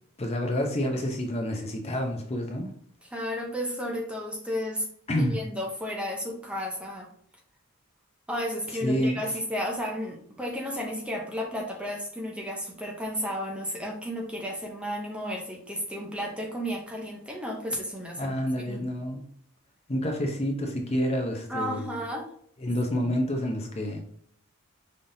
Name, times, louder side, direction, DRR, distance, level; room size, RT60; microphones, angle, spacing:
voice 1, 0.2-2.7 5.1-5.4 8.8-9.2 18.2-19.2 19.9-21.9 22.6-24.0, equal, 30° left, 2 dB, 0.7 m, -28 dB
voice 2, 3.0-4.9 5.2-7.1 8.3-18.9 21.5-22.3 23.0-23.1, equal, 5° right, 0 dB, 0.7 m, -33 dB
5.4 x 3.4 x 2.7 m, 0.62 s
head